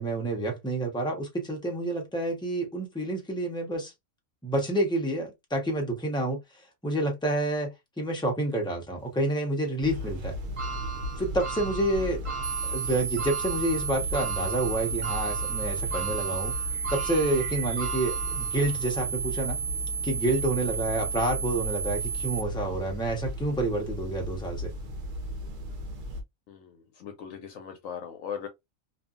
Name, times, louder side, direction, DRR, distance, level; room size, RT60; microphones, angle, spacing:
voice 1, 0.0-3.9 4.4-6.4 6.8-10.4 11.2-12.2 12.7-16.5 16.9-19.6 20.0-24.7, right 1 dB, 5° left, 0.5 m, -29 dB
sound 1, 9.8-26.2, equal, 70° right, 1.0 m, -36 dB
sound 2, 10.6-18.9 19.4-19.5 20.7-20.8, right 6 dB, 45° right, 0.4 m, -38 dB
sound 3, 12.4-22.4, right 7 dB, 20° right, 0.8 m, -32 dB
voice 2, 26.5-28.5, left 7 dB, 75° left, 1.0 m, -39 dB
2.6 x 2.6 x 2.4 m
omnidirectional pair, 1.5 m